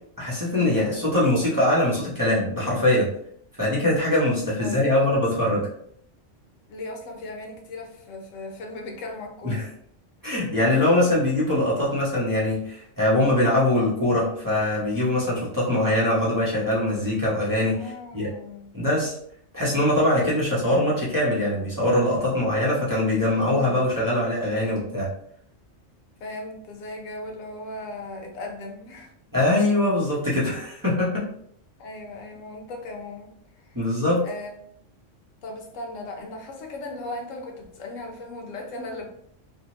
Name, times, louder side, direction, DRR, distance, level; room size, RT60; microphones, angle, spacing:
voice 1, 0.2-3.1 3.6-5.7 9.4-9.7 10.2-18.3 18.7-19.1 19.5-25.1 29.3-31.2 33.7-34.2, left 1 dB, 20° right, -7 dB, 0.7 m, -22 dB
voice 2, 4.6-5.6 6.7-9.7 17.8-18.8 23.3-23.9 26.2-29.1 31.8-33.3 33.6-33.8 34.2-34.6 35.4-39.1, left 2 dB, 90° left, 2 dB, 1.1 m, -37 dB
2.7 x 2.1 x 2.9 m, 0.66 s
omnidirectional pair, 1.3 m